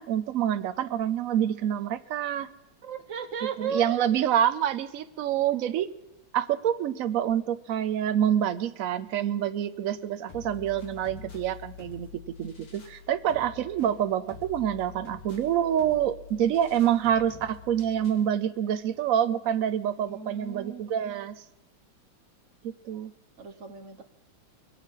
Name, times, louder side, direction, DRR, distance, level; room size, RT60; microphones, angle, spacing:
voice 1, 0.0-2.5 3.6-5.9 6.3-21.4 22.6-23.1, right 10 dB, 75° right, 11 dB, 0.7 m, -27 dB
voice 2, 2.8-4.0 9.9-10.0 20.0-20.9 23.4-24.0, right 6 dB, 45° right, 7 dB, 1.2 m, -36 dB
sound 1, 10.3-18.3, left 8 dB, 70° left, 2.7 m, -47 dB
22.0 x 8.2 x 5.5 m, 0.94 s
omnidirectional pair, 2.1 m